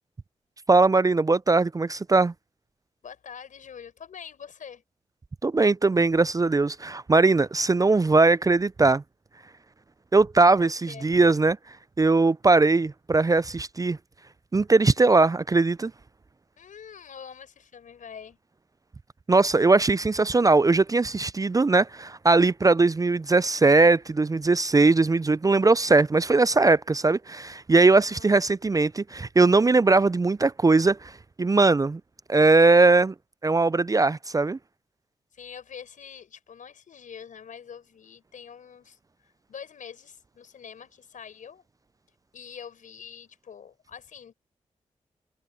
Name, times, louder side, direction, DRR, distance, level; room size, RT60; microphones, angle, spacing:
voice 1, 0.7-2.3 5.4-9.0 10.1-11.6 12.0-14.0 14.5-15.9 19.3-31.1 31.4-32.0 32.3-33.1 33.4-34.6, right 3 dB, 25° right, 0.4 m, -20 dB
voice 2, 3.0-4.8 10.6-11.1 16.6-18.4 27.9-28.3 35.3-39.0 39.5-41.6 42.3-44.3, left 7 dB, 75° left, 5.4 m, -44 dB
supercardioid pair, 40°, 13 cm